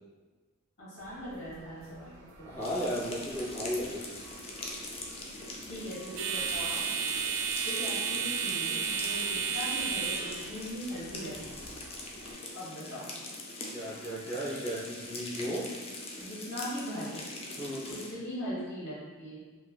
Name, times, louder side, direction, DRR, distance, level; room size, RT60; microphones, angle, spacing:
voice 1, 0.8-2.5 5.7-6.8 7.6-11.6 12.5-13.1 16.2-17.2 17.9-19.4, equal, 55° left, -8 dB, 1.2 m, -40 dB
sound 1, 1.0-12.3, right 6 dB, 65° right, 0.4 m, -35 dB
voice 2, 2.5-4.0 13.7-15.7 17.6-17.9, equal, 10° left, -12 dB, 0.9 m, -35 dB
sound 2, 2.6-18.1, left 2 dB, 30° left, 0.4 m, -42 dB
3.1 x 2.6 x 2.3 m, 1.4 s
head